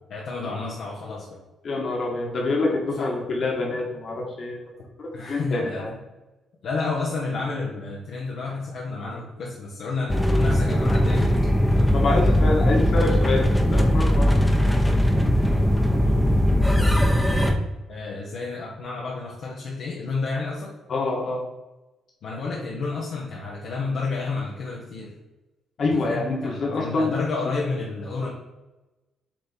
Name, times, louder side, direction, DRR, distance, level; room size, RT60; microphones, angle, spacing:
voice 1, 0.0-1.4 3.0-3.1 5.1-5.9 6.6-12.7 17.9-20.7 22.2-25.2 26.0-28.3, left 3 dB, 70° left, -4 dB, 1.3 m, -31 dB
voice 2, 1.6-4.6 5.0-5.9 11.9-14.4 14.8-14.9 15.9-16.3 16.8-16.9 20.9-21.5 25.8-27.1, left 2 dB, 55° left, 0 dB, 2.0 m, -26 dB
sound 1, 10.1-17.6, equal, 5° left, 0.9 m, -19 dB
7.6 x 3.6 x 4.5 m, 1.1 s
cardioid pair, 90°, 0 cm